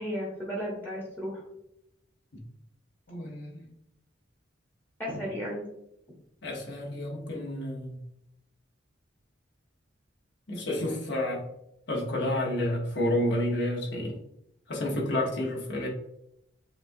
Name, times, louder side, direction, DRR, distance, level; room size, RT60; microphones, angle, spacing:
voice 1, 0.0-1.4 5.0-5.7, equal, 10° left, -5 dB, 1.0 m, -34 dB
voice 2, 3.1-3.7 6.4-8.0 10.5-11.4 11.9-14.2 14.7-15.9, left 1 dB, 60° left, -2 dB, 1.1 m, -30 dB
7.0 x 2.4 x 2.7 m, 0.81 s
head